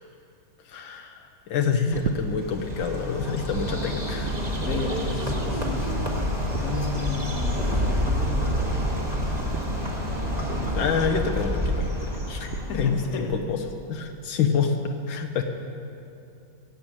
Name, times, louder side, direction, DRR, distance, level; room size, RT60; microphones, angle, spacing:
voice 1, 0.7-4.3 10.8-13.6 13.9-15.4, left 6 dB, 80° left, 4 dB, 1.6 m, -27 dB
Bird, 1.9-13.3, equal, 20° right, 1.9 m, -28 dB
sound 1, 2.0-2.9 3.2-5.5 5.8-13.4 13.7-14.2, right 7 dB, 70° right, 1.3 m, -37 dB
voice 2, 4.6-9.1 12.6-13.4, left 3 dB, 50° left, 3 dB, 1.6 m, -34 dB
16.0 x 7.9 x 8.7 m, 2.6 s
omnidirectional pair, 2.0 m